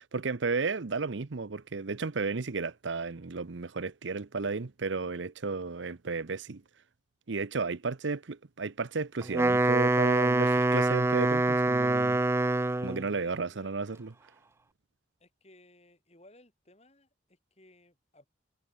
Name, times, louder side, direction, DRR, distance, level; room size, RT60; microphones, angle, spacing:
voice 1, 0.0-6.6 7.3-12.2 12.8-14.1, right 4 dB, 75° right, 0.8 m, -33 dB
Wind instrument woodwind instrument, 9.2-13.1, right 2 dB, 15° right, 0.3 m, -25 dB
voice 2, 13.0-13.7 15.2-18.3, left 1 dB, 35° left, 5.4 m, -60 dB
head